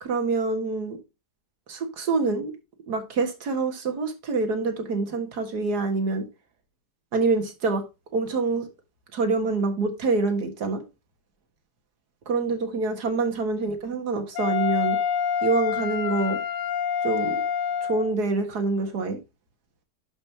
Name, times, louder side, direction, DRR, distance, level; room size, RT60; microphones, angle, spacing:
voice 1, 0.0-1.0 1.7-2.5 2.9-6.2 7.1-7.8 8.1-8.7 9.1-10.8 12.3-15.0 15.4-16.4 17.0-17.4 17.8-19.2, right 3 dB, 65° right, 2.2 m, -26 dB
Wind instrument woodwind instrument, 14.4-18.1, left 7 dB, 80° left, 1.5 m, -27 dB
11.5 x 5.4 x 2.8 m
omnidirectional pair, 1.9 m